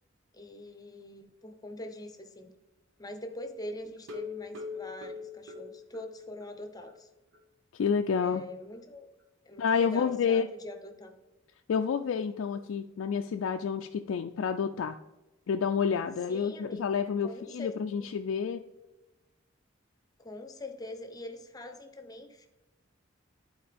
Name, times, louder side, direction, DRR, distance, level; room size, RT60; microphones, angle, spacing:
voice 1, 0.3-2.5 3.0-7.1 8.2-9.1 9.5-11.1 16.3-17.7 18.0-18.1 20.2-22.5, left 1 dB, 20° left, 6 dB, 0.8 m, -43 dB
sound 1, 4.0-6.6 6.9-7.0 7.3-7.4 7.8-7.9, left 4 dB, 75° right, 1.3 m, -41 dB
voice 2, 7.7-8.4 9.6-10.5 11.7-15.0 15.5-18.7, left 6 dB, 80° left, 5 dB, 0.4 m, -29 dB
11.0 x 4.3 x 3.4 m, 1.1 s
head